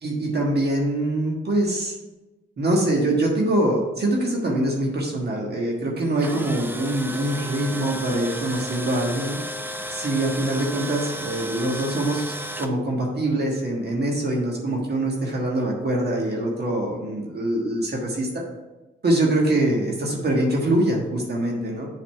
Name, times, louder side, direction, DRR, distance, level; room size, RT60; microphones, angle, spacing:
voice 1, 0.0-1.9 2.6-9.4 9.9-18.4 19.0-21.9, right 1 dB, 50° right, -1 dB, 1.5 m, -24 dB
Tools, 6.0-12.7, right 1 dB, 10° right, 0.7 m, -34 dB
7.6 x 4.1 x 5.5 m, 1.1 s
cardioid pair, 90°, 21 cm